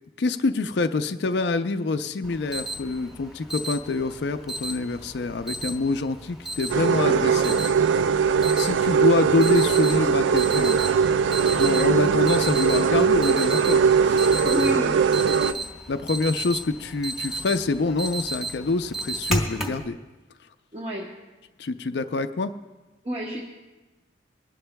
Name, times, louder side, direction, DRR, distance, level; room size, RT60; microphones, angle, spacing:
voice 1, 0.2-7.6 8.6-10.8 11.4-14.5 15.9-20.0 21.6-22.5, left 3 dB, 60° left, 8 dB, 0.4 m, -26 dB
Alarm, 2.2-19.8, right 1 dB, ahead, 1.3 m, -34 dB
sound 1, 6.7-15.5, right 6 dB, 75° right, 0.3 m, -20 dB
voice 2, 14.5-15.6 20.7-21.1 23.0-23.4, equal, 30° right, -2 dB, 0.9 m, -29 dB
26.5 x 11.5 x 2.2 m, 1.2 s
head